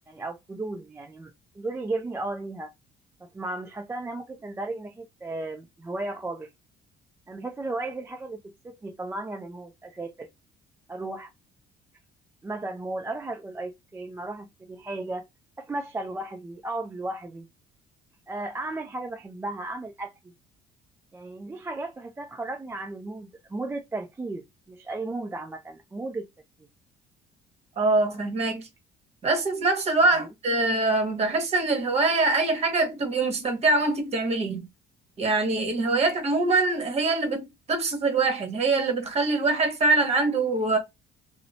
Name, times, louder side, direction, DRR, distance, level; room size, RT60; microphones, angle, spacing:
voice 1, 0.1-1.3 1.6-2.7 3.2-6.5 7.3-10.3 10.9-11.3 12.4-15.3 15.6-17.5 18.3-20.1 21.1-26.3 30.1-30.3, right 2 dB, 15° right, 0.3 m, -35 dB
voice 2, 27.8-28.7 29.2-34.7 35.2-40.8, right 3 dB, 40° right, 1.0 m, -24 dB
2.8 x 2.0 x 2.6 m
cardioid pair, 110°, 17 cm